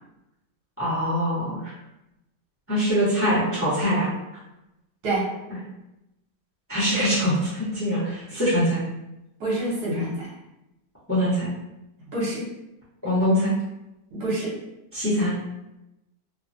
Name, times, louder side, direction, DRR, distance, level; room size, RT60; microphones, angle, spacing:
voice 1, 0.8-1.7 2.7-4.1 6.7-8.8 11.1-11.5 13.0-13.5 14.9-15.3, equal, 10° left, -10 dB, 0.9 m, -23 dB
voice 2, 9.4-10.3 12.1-12.4 14.1-14.5, right 1 dB, 70° right, -6 dB, 1.4 m, -26 dB
3.1 x 2.2 x 2.6 m, 0.92 s
omnidirectional pair, 1.8 m